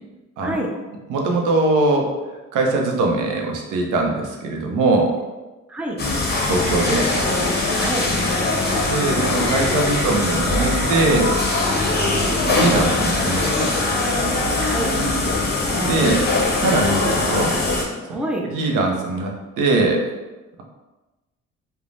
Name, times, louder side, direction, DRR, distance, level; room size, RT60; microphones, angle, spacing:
voice 1, 1.1-2.1 2.5-5.1 6.5-7.1 8.8-11.4 12.0-13.9 15.8-16.3 16.5-17.6 18.4-20.1, right 2 dB, 90° right, 1 dB, 0.6 m, -21 dB
sound 1, 6.0-17.8, left 2 dB, 35° left, 0.6 m, -21 dB
voice 2, 7.8-8.1 12.3-12.5 14.6-14.9 18.1-18.5, right 1 dB, 5° right, 0 dB, 0.4 m, -27 dB
3.1 x 2.1 x 2.5 m, 1.1 s
cardioid pair, 90°, 30 cm